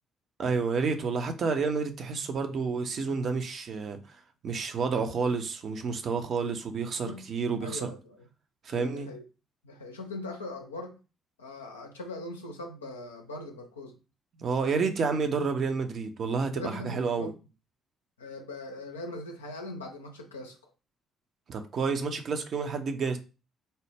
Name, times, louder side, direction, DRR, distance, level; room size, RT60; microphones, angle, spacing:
voice 1, 0.4-4.0 4.4-7.9 8.6-9.1 14.4-17.3 21.5-23.2, right 5 dB, 55° right, 0.6 m, -29 dB
voice 2, 7.6-8.3 8.7-9.2 9.6-11.0 11.4-14.0 16.6-17.3 18.2-20.6, left 2 dB, 90° left, 0.4 m, -40 dB
4.1 x 2.0 x 3.3 m
hypercardioid pair, 45°, 0 cm